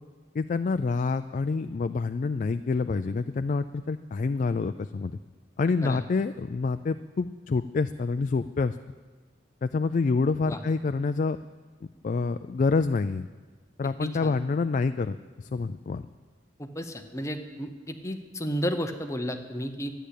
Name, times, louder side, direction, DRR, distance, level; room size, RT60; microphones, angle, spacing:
voice 1, 0.3-5.2 5.6-8.8 9.6-11.4 12.0-13.3 13.8-16.1, left 4 dB, 45° left, 10 dB, 0.3 m, -27 dB
voice 2, 14.0-14.4 16.6-19.9, equal, 15° left, 6 dB, 0.9 m, -33 dB
12.5 x 10.0 x 8.3 m, 1.4 s
head